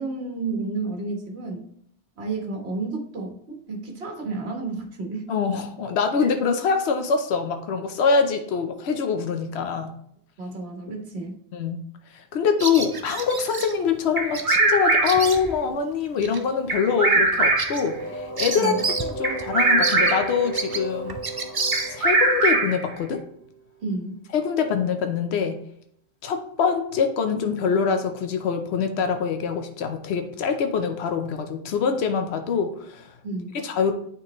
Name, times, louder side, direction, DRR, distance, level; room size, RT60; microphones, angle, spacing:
voice 1, 0.0-1.6 2.2-3.4 3.7-5.3 10.4-11.4 18.6-18.8 23.8-24.2 33.2-33.5, right 3 dB, 75° right, 2 dB, 1.5 m, -31 dB
voice 2, 5.3-9.9 11.5-11.8 12.1-18.7 19.0-21.2 21.9-23.2 24.3-25.6 26.2-33.1 33.6-33.9, left 6 dB, 85° left, 6 dB, 1.0 m, -24 dB
Bird vocalization bird call bird song, 12.6-13.7 14.3-14.6 14.9-15.7 16.2-16.4 16.8-16.9 17.3-19.2 19.4-19.5 19.8-22.3, right 4 dB, 35° right, 0.4 m, -30 dB
Bird vocalization bird call bird song 2, 14.2-15.3 16.7-17.9 19.2-20.4 21.7-22.9, right 2 dB, 50° right, 1.1 m, -21 dB
sound 1, 17.8-23.5, right 1 dB, 15° left, 1.3 m, -34 dB
9.0 x 3.9 x 3.0 m, 0.69 s
omnidirectional pair, 1.1 m